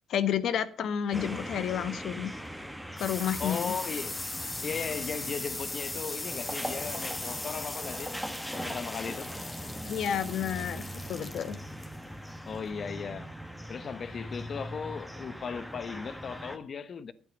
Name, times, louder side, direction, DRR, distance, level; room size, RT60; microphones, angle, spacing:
voice 1, 0.1-2.3 3.0-3.7 9.9-11.6, left 9 dB, 70° left, 1.4 m, -30 dB
sound 1, 1.1-16.6, equal, ahead, 1.8 m, -40 dB
sound 2, 2.3-13.5, left 2 dB, 20° left, 2.1 m, -40 dB
voice 2, 3.4-4.2 4.6-8.1 8.5-9.3 12.5-13.3 13.7-17.1, left 6 dB, 50° left, 1.1 m, -37 dB
11.5 x 9.2 x 5.2 m
cardioid pair, 90°, 0 cm